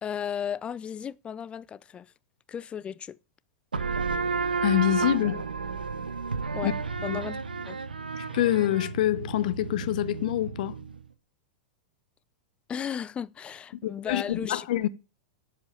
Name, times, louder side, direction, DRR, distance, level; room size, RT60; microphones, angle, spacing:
voice 1, 0.0-2.1 2.5-3.2 6.5-6.7 7.0-7.4 7.7-7.8 12.7-14.7, left 8 dB, 25° left, 0.5 m, -35 dB
sound 1, 3.7-11.0, right 5 dB, 90° right, 0.8 m, -32 dB
voice 2, 4.6-5.4 6.6-6.7 7.1-7.2 8.2-10.8 13.8-14.9, left 13 dB, 60° left, 0.8 m, -26 dB
12.5 x 5.1 x 7.1 m
figure-of-eight pair, 95°, 5 cm